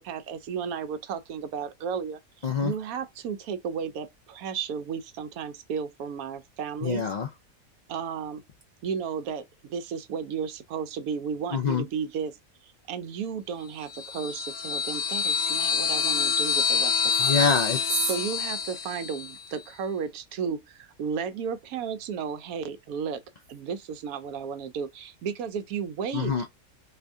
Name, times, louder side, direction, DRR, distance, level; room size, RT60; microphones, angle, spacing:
voice 1, 0.0-2.2 2.6-7.0 7.9-8.4 8.8-12.4 12.6-17.5 18.0-23.2 23.5-26.3, right 6 dB, 80° right, 1.0 m, -33 dB
voice 2, 6.8-7.3 11.5-11.8 17.1-18.1 26.1-26.5, left 4 dB, 85° left, 0.3 m, -26 dB
sound 1, 13.9-19.4, left 6 dB, 70° left, 1.0 m, -27 dB
2.8 x 2.6 x 3.4 m
omnidirectional pair, 1.5 m